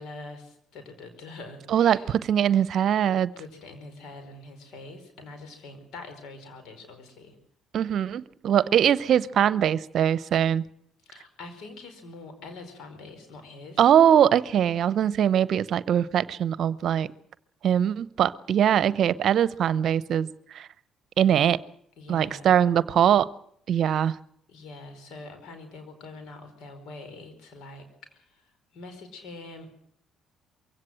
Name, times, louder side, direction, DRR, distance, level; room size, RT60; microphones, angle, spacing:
voice 1, 0.0-2.1 3.4-7.3 11.0-13.8 22.0-22.5 23.7-23.9 24.5-28.4 28.7-29.7, left 3 dB, 70° left, 8 dB, 4.8 m, -44 dB
voice 2, 1.7-3.3 7.7-10.6 13.8-17.1 17.6-20.3 20.5-20.7 21.2-21.6 22.1-23.3 23.7-24.2, right 9 dB, 60° right, 18 dB, 0.7 m, -22 dB
23.0 x 16.5 x 7.7 m, 0.69 s
hypercardioid pair, 55°, 0 cm